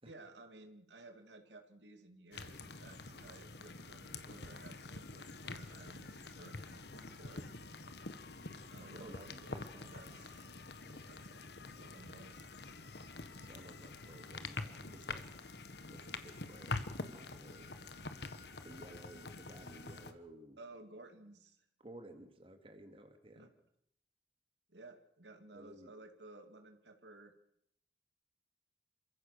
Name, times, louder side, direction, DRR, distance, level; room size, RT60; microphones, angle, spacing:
voice 1, 0.0-7.5 8.7-10.5 11.1-11.2 11.6-12.4 20.6-21.6 23.4-23.5 24.7-27.3, right 2 dB, 90° right, 6 dB, 2.7 m, -56 dB
sound 1, 2.3-20.1, left 3 dB, 70° left, 1.6 m, -46 dB
voice 2, 8.8-10.3 10.9-11.1 13.4-15.3 15.9-17.7 18.6-20.6 21.8-23.5 25.5-25.9, right 1 dB, 30° right, 6 dB, 2.4 m, -55 dB
28.0 x 15.5 x 6.8 m, 0.74 s
head